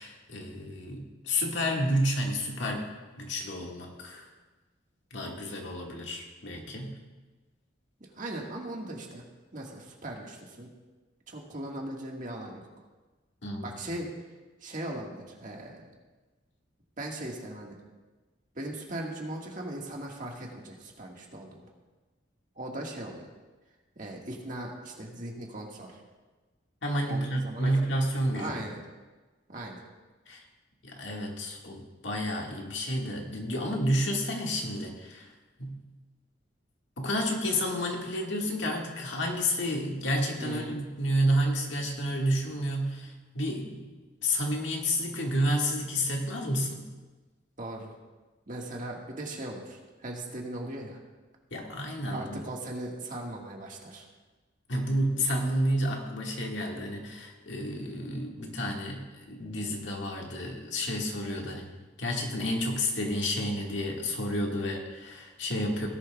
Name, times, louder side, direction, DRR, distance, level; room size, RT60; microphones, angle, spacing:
voice 1, 0.0-2.9 3.2-4.3 5.1-7.0 13.4-13.7 26.8-28.6 30.3-30.4 30.8-35.3 35.6-35.8 37.0-43.9 44.2-46.8 51.5-52.4 54.7-61.7 62.0-65.9, equal, 75° left, 0 dB, 1.8 m, -30 dB
voice 2, 8.0-9.2 9.5-10.7 11.3-12.7 13.6-14.1 14.6-15.8 17.0-17.8 18.5-21.7 22.5-23.3 23.9-26.0 27.0-27.7 28.3-28.8 29.5-29.8 40.4-40.8 47.6-47.9 48.5-51.0 52.0-54.1, right 1 dB, 45° right, 0 dB, 1.7 m, -39 dB
17.5 x 11.0 x 2.3 m, 1.2 s
head